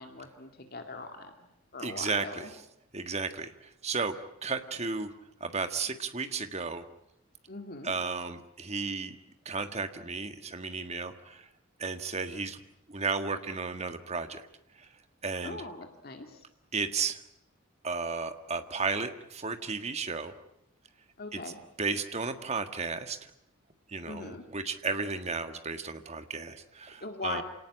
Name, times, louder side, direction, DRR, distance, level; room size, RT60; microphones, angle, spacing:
voice 1, 0.0-1.3 1.7-2.5 7.5-7.9 15.4-16.4 21.2-21.6 24.0-24.4 27.0-27.4, left 3 dB, 45° left, 5 dB, 2.2 m, -40 dB
voice 2, 1.8-2.4 2.9-3.5 3.8-4.1 4.4-5.1 5.4-6.8 7.8-9.1 9.4-11.5 11.8-12.6 12.9-14.4 14.8-14.9 15.2-15.6 16.7-17.2 17.8-20.3 21.3-21.4 21.8-23.3 23.9-27.4, right 4 dB, 30° right, 8 dB, 1.7 m, -33 dB
28.0 x 18.5 x 9.9 m, 0.83 s
head